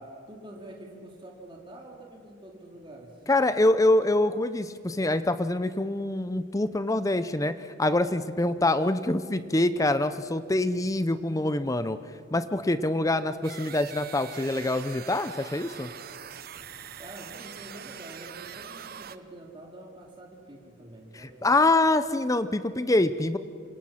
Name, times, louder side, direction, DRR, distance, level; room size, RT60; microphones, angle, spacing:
voice 1, 0.0-3.2 17.0-21.7, right 1 dB, 25° right, -1 dB, 2.8 m, -46 dB
voice 2, 3.3-12.0 12.3-15.9 21.1-23.4, left 2 dB, 15° left, 12 dB, 0.6 m, -25 dB
sound 1, 13.4-19.2, right 8 dB, 50° right, 0.8 m, -43 dB
27.0 x 26.0 x 5.8 m, 2.2 s
head